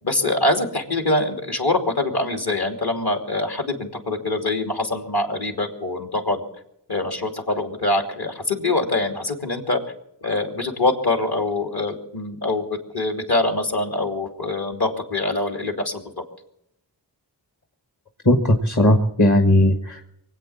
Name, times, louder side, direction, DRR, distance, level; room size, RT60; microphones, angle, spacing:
voice 1, 0.0-6.4 6.9-9.8 10.2-12.7 12.9-16.0, left 2 dB, 55° left, 3 dB, 2.9 m, -24 dB
voice 2, 18.2-20.0, left 1 dB, 40° left, 4 dB, 1.6 m, -17 dB
23.5 x 8.5 x 7.3 m, 0.78 s
wide cardioid pair, 55°, 45 cm